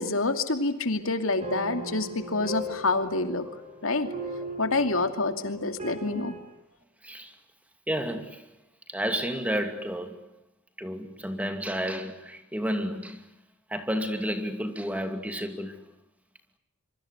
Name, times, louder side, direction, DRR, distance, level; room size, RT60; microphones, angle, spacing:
voice 1, 0.0-3.5 3.8-4.1 4.6-6.3, left 3 dB, 75° left, 2.7 m, -27 dB
sound 1, 1.4-6.4, right 1 dB, 30° right, 7.2 m, -38 dB
voice 2, 7.0-7.3 7.9-8.5 8.9-10.3 10.8-13.3 13.7-15.9, equal, 5° right, 2.5 m, -31 dB
26.5 x 24.5 x 8.2 m
head